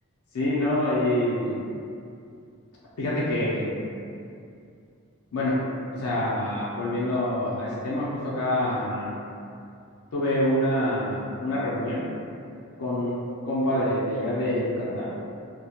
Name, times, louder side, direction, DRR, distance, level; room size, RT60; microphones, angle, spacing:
voice 1, 0.3-1.6 3.0-3.7 5.3-5.6 5.9-9.2 10.1-12.0 12.8-13.1 13.4-15.1, left 1 dB, 75° left, -7 dB, 0.4 m, -26 dB
2.2 x 2.0 x 2.8 m, 2.5 s
head